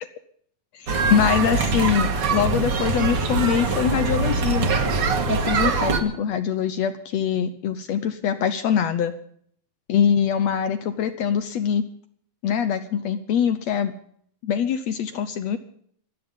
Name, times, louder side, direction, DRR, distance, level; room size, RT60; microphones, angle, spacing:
voice 1, 0.7-4.7 5.3-9.1 9.9-11.9 12.4-14.0 14.4-15.6, left 8 dB, 75° left, 11 dB, 1.6 m, -23 dB
sound 1, 0.9-6.0, right 4 dB, 50° right, 2.1 m, -23 dB
25.0 x 9.3 x 5.5 m, 0.62 s
omnidirectional pair, 4.0 m